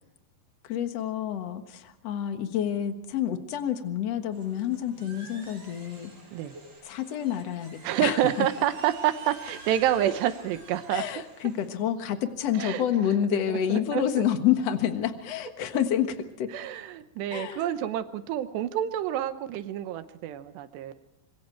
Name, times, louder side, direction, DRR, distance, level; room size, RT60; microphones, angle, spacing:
voice 1, 0.6-6.1 6.8-8.5 10.9-16.5 17.3-17.7, left 10 dB, 60° left, 8 dB, 1.7 m, -28 dB
sound 1, 4.3-11.7, right 1 dB, 35° right, 8.3 m, -49 dB
voice 2, 7.8-11.1 12.5-12.8 13.5-14.0 16.5-20.9, right 11 dB, 80° right, 11 dB, 3.1 m, -28 dB
26.0 x 23.0 x 4.5 m, 0.83 s
omnidirectional pair, 4.9 m